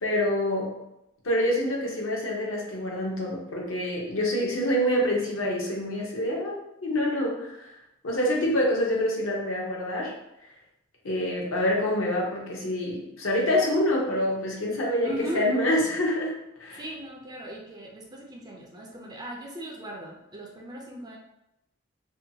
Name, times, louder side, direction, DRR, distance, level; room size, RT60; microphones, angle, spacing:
voice 1, 0.0-0.7 1.2-7.7 8.0-10.1 11.0-16.3 16.6-16.8, left 1 dB, 65° left, -2 dB, 0.7 m, -26 dB
voice 2, 15.0-15.5 16.8-21.2, right 1 dB, 20° right, -1 dB, 0.3 m, -38 dB
2.6 x 2.2 x 2.7 m, 0.86 s
head